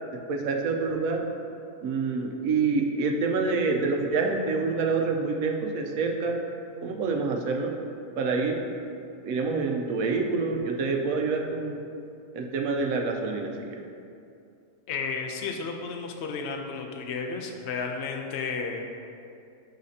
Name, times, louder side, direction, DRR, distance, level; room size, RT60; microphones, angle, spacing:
voice 1, 0.3-1.2 1.8-6.4 6.8-7.7 8.2-8.6 9.2-11.8 12.3-13.8, right 4 dB, 80° right, 2 dB, 1.1 m, -27 dB
voice 2, 14.9-18.9, left 5 dB, 60° left, 3 dB, 0.8 m, -32 dB
11.5 x 4.1 x 2.7 m, 2.5 s
omnidirectional pair, 1.4 m